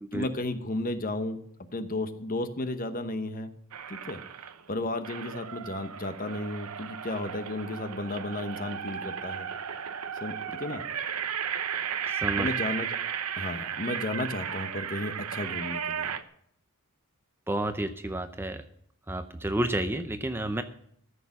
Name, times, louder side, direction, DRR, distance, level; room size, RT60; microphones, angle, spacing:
voice 1, 0.1-1.4 1.7-3.5 3.9-4.2 4.7-9.5 10.2-10.3 10.6-10.8 12.4-12.9 13.4-16.1, left 2 dB, 40° left, 10 dB, 1.0 m, -33 dB
sound 1, 3.7-4.6 5.0-16.2, right 8 dB, 80° right, 0.8 m, -34 dB
voice 2, 12.1-12.5 17.5-18.6 19.1-20.6, right 1 dB, 10° right, 9 dB, 0.6 m, -30 dB
14.0 x 6.7 x 7.1 m, 0.67 s
head